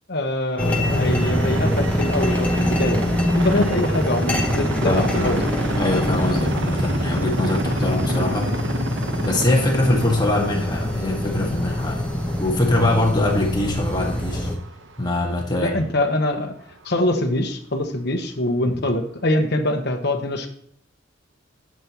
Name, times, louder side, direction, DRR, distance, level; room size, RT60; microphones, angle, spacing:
voice 1, 0.1-5.4 15.6-16.5 16.8-20.5, left 1 dB, 60° left, 5 dB, 1.2 m, -24 dB
sound 1, 0.6-14.5, left 1 dB, 5° left, 1.3 m, -24 dB
sound 2, 0.8-16.9 17.4-17.5 18.5-18.6 19.4-19.5, right 3 dB, 75° right, 0.9 m, -32 dB
voice 2, 4.8-5.4 5.8-8.5 9.2-12.1 12.4-14.5 15.0-15.8, left 2 dB, 20° left, 0 dB, 1.6 m, -23 dB
11.5 x 7.5 x 3.0 m, 0.66 s
head